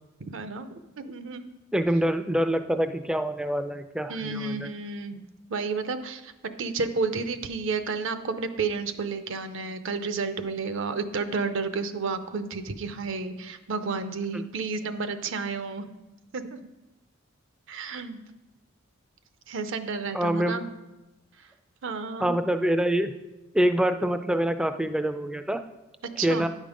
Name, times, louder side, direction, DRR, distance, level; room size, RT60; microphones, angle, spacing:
voice 1, 0.3-1.5 4.1-5.2 5.5-6.3 6.6-15.9 16.3-16.6 17.7-18.2 19.5-20.7 21.8-22.3 26.2-26.5, right 4 dB, 65° right, 10 dB, 0.6 m, -31 dB
voice 2, 1.7-4.7 14.3-14.4 20.1-20.6 22.2-23.1 23.5-25.6 26.2-26.5, right 1 dB, 5° right, 10 dB, 0.3 m, -25 dB
9.7 x 5.3 x 5.1 m, 1.0 s
head